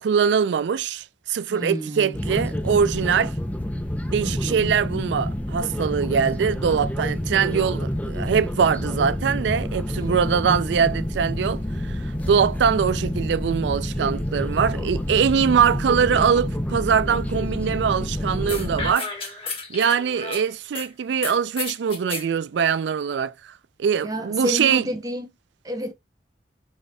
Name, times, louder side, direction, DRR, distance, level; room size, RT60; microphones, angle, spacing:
voice 1, 0.0-3.3 4.1-19.1 19.7-23.5 23.8-24.9, right 7 dB, 70° right, 0.4 m, -22 dB
voice 2, 1.5-2.2 4.2-4.7 9.9-10.6 24.0-25.3 25.6-25.9, equal, 20° right, 1.1 m, -30 dB
sound 1, 2.1-18.9, left 1 dB, 10° left, 0.5 m, -28 dB
sound 2, 18.5-20.9 21.2-22.3, left 3 dB, 30° left, 1.5 m, -32 dB
5.0 x 4.0 x 2.2 m
head